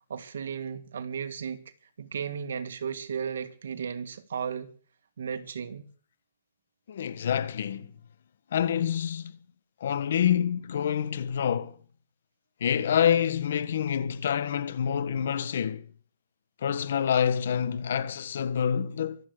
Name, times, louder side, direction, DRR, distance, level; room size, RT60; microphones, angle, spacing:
voice 1, 0.1-1.6 2.0-4.7 5.2-5.8, right 7 dB, 80° right, 2.2 m, -34 dB
voice 2, 6.9-7.9 8.5-9.3 9.8-11.7 12.6-15.8 16.6-19.2, left 8 dB, 65° left, 1.3 m, -27 dB
24.5 x 8.5 x 6.6 m
hypercardioid pair, 165°, 0 cm